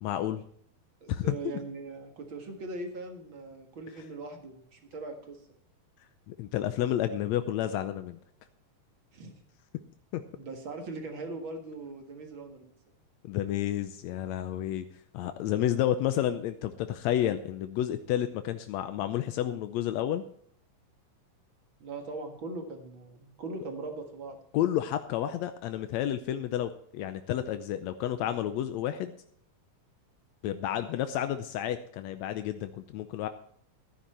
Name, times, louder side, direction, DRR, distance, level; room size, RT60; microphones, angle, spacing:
voice 1, 0.0-0.4 1.1-1.6 6.3-8.2 10.1-10.2 13.2-14.9 15.1-20.2 24.5-29.1 30.4-33.3, left 11 dB, 85° left, 10 dB, 1.6 m, -30 dB
voice 2, 1.0-5.4 9.1-9.3 10.4-12.8 21.8-24.4, right 3 dB, 45° right, 4 dB, 2.0 m, -40 dB
14.0 x 10.0 x 4.4 m, 0.63 s
omnidirectional pair, 3.9 m